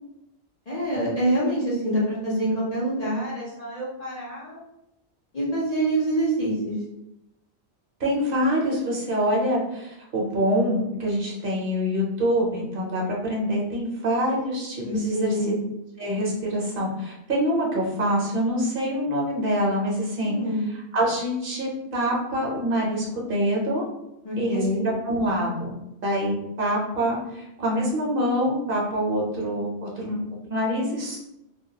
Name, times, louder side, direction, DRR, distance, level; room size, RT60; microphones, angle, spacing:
voice 1, 0.7-4.6 5.3-6.8 14.8-15.6 20.2-20.7 24.2-24.8, right 1 dB, 45° left, -7 dB, 0.6 m, -26 dB
voice 2, 8.0-15.5 16.0-20.3 20.9-23.9 24.4-25.7 26.0-30.2 30.5-31.2, equal, 60° right, -3 dB, 0.8 m, -25 dB
2.2 x 2.2 x 2.7 m, 0.88 s
omnidirectional pair, 1.1 m